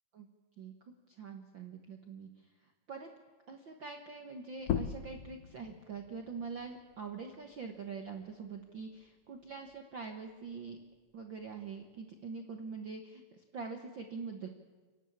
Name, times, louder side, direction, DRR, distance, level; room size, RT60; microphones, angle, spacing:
voice 1, 0.6-2.3 2.9-3.1 3.5-10.8 11.1-14.5, right 5 dB, 65° right, 4 dB, 1.2 m, -44 dB
sound 1, 4.6-9.8 10.2-12.0, left 9 dB, 75° left, 1.4 m, -42 dB
29.0 x 12.0 x 8.7 m, 1.4 s
omnidirectional pair, 4.0 m